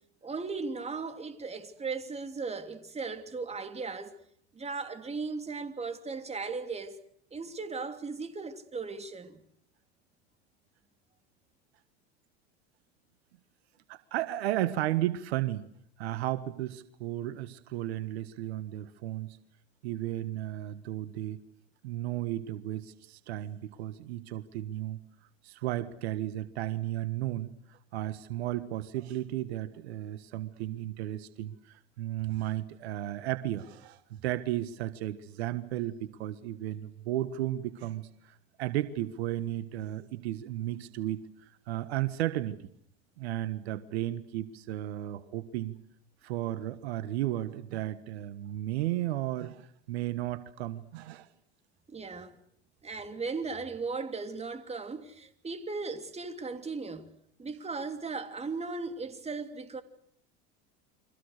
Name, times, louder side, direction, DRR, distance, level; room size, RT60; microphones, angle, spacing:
voice 1, 0.2-4.1 4.5-7.0 7.3-9.4 51.9-52.4 52.8-57.1 57.4-59.8, right 4 dB, 20° right, 3.2 m, -37 dB
voice 2, 13.9-15.7 16.0-19.4 19.8-21.4 21.8-25.0 25.4-41.2 41.7-42.6 43.2-45.7 46.2-51.3, right 14 dB, 80° right, 1.5 m, -34 dB
30.0 x 24.0 x 6.7 m
hypercardioid pair, 90°, 32 cm